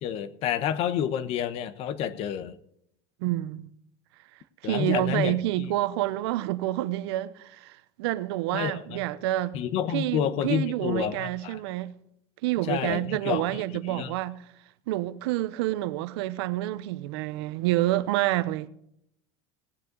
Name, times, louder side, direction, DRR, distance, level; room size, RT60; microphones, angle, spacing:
voice 1, 0.0-2.6 4.6-5.7 8.5-9.0 9.5-11.6 12.7-13.6 13.9-14.1, left 9 dB, 50° left, 1.1 m, -29 dB
voice 2, 3.2-3.7 4.6-9.6 9.9-11.9 12.4-14.4 14.9-18.7, right 15 dB, 80° right, 0.9 m, -28 dB
18.0 x 9.5 x 4.0 m
supercardioid pair, 140°, 13 cm